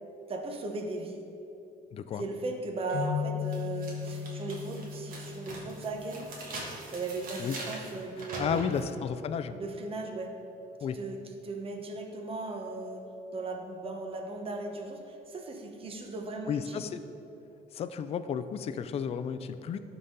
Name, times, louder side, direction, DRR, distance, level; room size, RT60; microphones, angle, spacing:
voice 1, 0.3-1.2 2.2-6.3 6.9-8.7 9.5-10.3 10.8-11.2 11.4-13.0 13.3-16.8 19.7-19.8, right 3 dB, 35° right, 3 dB, 0.9 m, -37 dB
voice 2, 1.9-2.2 7.4-7.6 8.4-9.6 10.8-11.0 16.5-17.0 17.7-19.8, left 7 dB, 35° left, 11 dB, 0.4 m, -33 dB
sound 1, 2.9-6.4, left 8 dB, 80° left, 0.9 m, -36 dB
sound 2, 2.9-3.0 3.5-8.9, right 2 dB, 55° right, 1.7 m, -42 dB
12.0 x 4.1 x 3.8 m, 2.9 s
cardioid pair, 110°, 17 cm